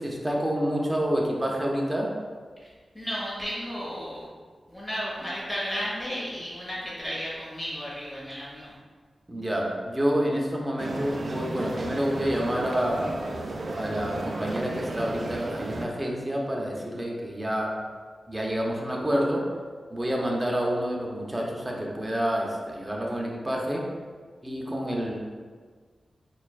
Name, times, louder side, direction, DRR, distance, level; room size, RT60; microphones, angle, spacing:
voice 1, 0.0-2.1 9.3-13.2 13.7-17.8 18.3-19.5 19.9-23.8 24.4-25.2, equal, 20° right, -1 dB, 0.7 m, -28 dB
voice 2, 2.9-4.2 4.7-8.7, equal, 30° left, -7 dB, 1.1 m, -33 dB
sound 1, 10.8-15.9, right 2 dB, 60° right, 0.3 m, -34 dB
4.3 x 2.3 x 2.4 m, 1.6 s
cardioid pair, 45°, 0 cm